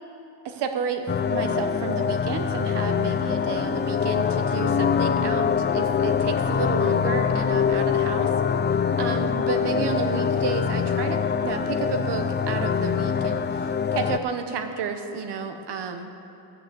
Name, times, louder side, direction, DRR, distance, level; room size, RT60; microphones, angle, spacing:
voice 1, 0.4-8.3 9.0-16.3, right 5 dB, 85° right, 7 dB, 1.1 m, -31 dB
sound 1, 1.1-14.2, left 7 dB, 30° left, 0.4 m, -24 dB
13.5 x 9.2 x 7.0 m, 2.9 s
cardioid pair, 95°, 40 cm